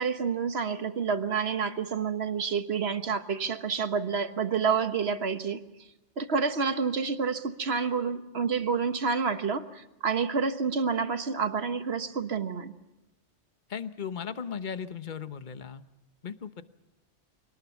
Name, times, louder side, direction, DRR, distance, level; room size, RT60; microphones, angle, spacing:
voice 1, 0.0-5.6 6.2-12.7, right 5 dB, 60° right, 9 dB, 1.5 m, -29 dB
voice 2, 13.7-15.8 16.2-16.6, left 7 dB, 45° left, 12 dB, 1.1 m, -36 dB
24.5 x 19.0 x 7.2 m, 0.99 s
omnidirectional pair, 1.2 m